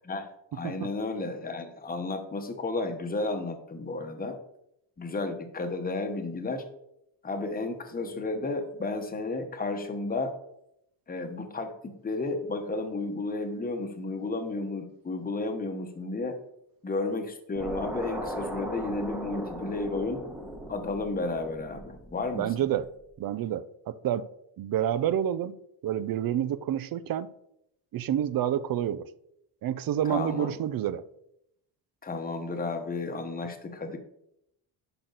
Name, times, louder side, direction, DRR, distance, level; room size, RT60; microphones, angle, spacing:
voice 1, 0.5-4.4 5.0-6.6 7.2-10.3 11.1-16.4 16.8-20.2 20.7-22.5 30.1-30.5 32.0-34.0, left 3 dB, 20° left, 1.1 m, -32 dB
sound 1, 17.6-22.8, equal, 5° right, 1.1 m, -38 dB
voice 2, 22.3-22.9 23.2-24.3 24.6-25.6 25.8-27.3 27.9-29.1 29.6-31.0, right 10 dB, 50° right, 0.5 m, -28 dB
10.5 x 6.1 x 4.0 m
cardioid pair, 145°, 47 cm